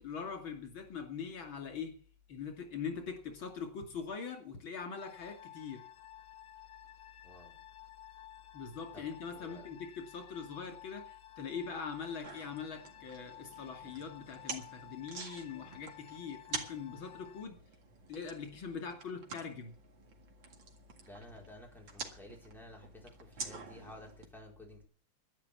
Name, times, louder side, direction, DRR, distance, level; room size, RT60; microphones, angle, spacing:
voice 1, 0.0-2.0 2.3-5.8 8.5-17.6 18.1-19.7, left 6 dB, 85° left, 4 dB, 3.4 m, -42 dB
sound 1, 5.0-17.5, left 12 dB, 60° left, 1.4 m, -54 dB
voice 2, 7.2-7.5 8.9-9.7 21.0-24.9, left 1 dB, ahead, 0 dB, 4.1 m, -53 dB
sound 2, 12.2-24.3, right 4 dB, 75° right, 2.8 m, -48 dB
12.0 x 9.9 x 8.4 m, 0.44 s
omnidirectional pair, 2.1 m